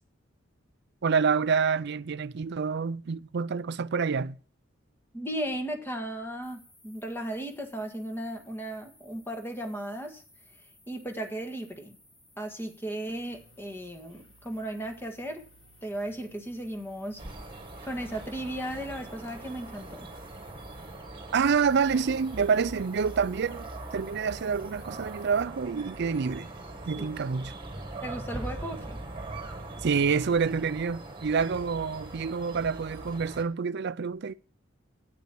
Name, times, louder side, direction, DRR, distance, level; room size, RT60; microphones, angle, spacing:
voice 1, 1.0-4.4 21.3-26.5 26.9-27.5 29.8-34.3, right 5 dB, 60° right, 0.5 m, -27 dB
voice 2, 5.1-10.2 10.9-12.0 12.4-15.4 15.8-17.2 17.8-20.1 27.0-27.1 28.0-29.0, right 1 dB, 10° left, 1.7 m, -36 dB
sound 1, 6.4-25.4, left 1 dB, 35° left, 4.8 m, -60 dB
sound 2, 13.1-20.3, right 2 dB, 70° left, 2.0 m, -61 dB
sound 3, 17.2-33.4, right 2 dB, 25° right, 2.0 m, -41 dB
9.3 x 8.3 x 6.0 m
head